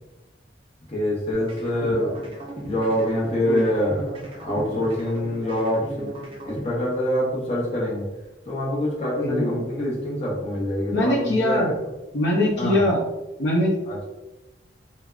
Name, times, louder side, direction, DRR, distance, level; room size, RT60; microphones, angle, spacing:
voice 1, 0.9-2.1 2.6-4.0 4.4-5.8 6.4-8.1 8.4-11.7 12.6-12.8 13.9-14.0, left 1 dB, 35° left, -6 dB, 0.8 m, -25 dB
sound 1, 1.3-7.3, right 1 dB, 30° right, 0.4 m, -36 dB
voice 2, 9.2-9.5 10.9-11.7 12.1-13.0 13.4-13.7, left 1 dB, 75° left, -3 dB, 0.6 m, -22 dB
3.4 x 2.1 x 2.3 m, 0.99 s
head